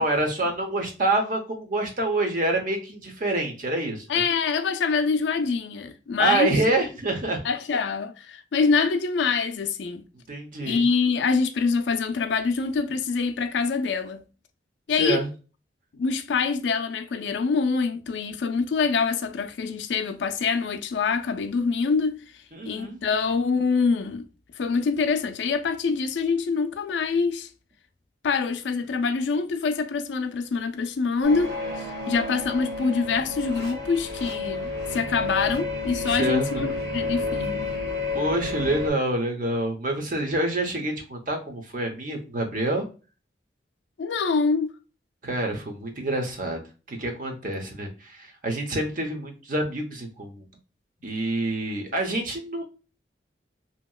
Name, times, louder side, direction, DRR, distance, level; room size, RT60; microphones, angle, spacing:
voice 1, 0.0-4.1 6.2-7.4 10.3-10.9 14.9-15.3 22.5-23.0 36.1-36.6 38.1-42.8 45.2-46.6 46.9-50.4 51.0-52.6, right 2 dB, 50° right, 0.8 m, -27 dB
voice 2, 4.1-6.6 7.4-10.0 10.6-14.2 14.9-15.2 15.9-22.2 22.6-24.3 24.5-27.5 28.2-37.7 44.0-44.7, left 5 dB, 80° left, 0.4 m, -25 dB
sound 1, 31.2-38.9, left 3 dB, 70° right, 1.4 m, -30 dB
2.9 x 2.8 x 2.3 m
head